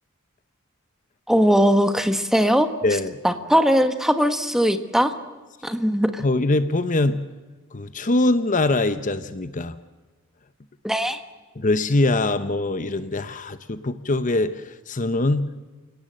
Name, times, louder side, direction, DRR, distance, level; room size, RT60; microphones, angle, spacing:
voice 1, 1.3-2.7 3.2-5.1 5.6-6.2 10.8-11.2, equal, ahead, 8 dB, 1.5 m, -20 dB
voice 2, 2.8-3.2 6.2-7.2 7.7-9.8 11.5-15.4, left 2 dB, 40° left, 12 dB, 0.9 m, -23 dB
29.5 x 18.0 x 7.7 m, 1.3 s
head